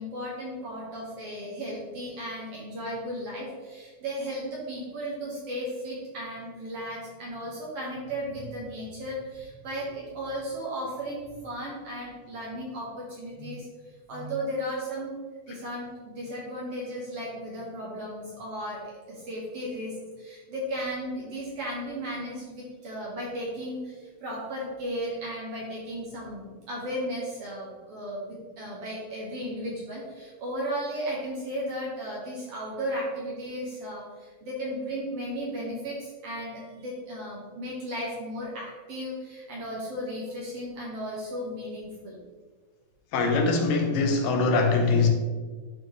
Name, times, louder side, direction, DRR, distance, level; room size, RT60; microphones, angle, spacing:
voice 1, 0.0-15.1 15.5-42.2, equal, 60° right, -4 dB, 1.7 m, -35 dB
voice 2, 43.1-45.1, left 3 dB, 75° left, 3 dB, 2.5 m, -22 dB
11.0 x 4.3 x 3.1 m, 1.5 s
omnidirectional pair, 4.1 m